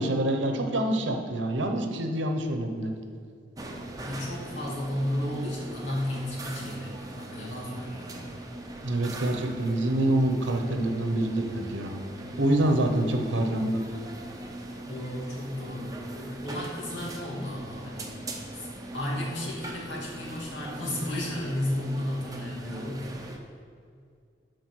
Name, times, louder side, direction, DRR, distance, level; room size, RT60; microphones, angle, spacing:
voice 1, 0.0-2.9 8.8-12.0 12.4-13.8, right 1 dB, 80° right, 4 dB, 0.9 m, -26 dB
sound 1, 3.6-23.4, right 1 dB, 20° right, 0.8 m, -41 dB
voice 2, 4.0-8.3 14.9-18.2 18.5-18.7 18.9-23.3, left 1 dB, 85° left, -4 dB, 2.3 m, -33 dB
12.5 x 4.6 x 4.6 m, 2.3 s
head